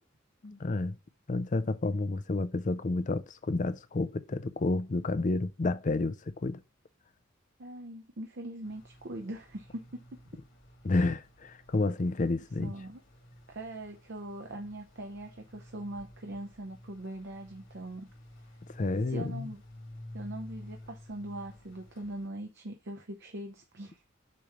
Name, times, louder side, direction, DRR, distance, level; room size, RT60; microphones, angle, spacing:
voice 1, 0.4-1.0 1.3-6.6 10.8-12.7 18.7-19.5, left 2 dB, 40° left, 0.5 m, -30 dB
voice 2, 7.6-10.2 12.6-13.0 13.5-18.1 19.1-19.6 20.1-24.1, right 1 dB, 60° right, 0.8 m, -41 dB
sound 1, 8.6-22.3, left 1 dB, 65° left, 2.7 m, -52 dB
6.9 x 3.2 x 4.8 m
head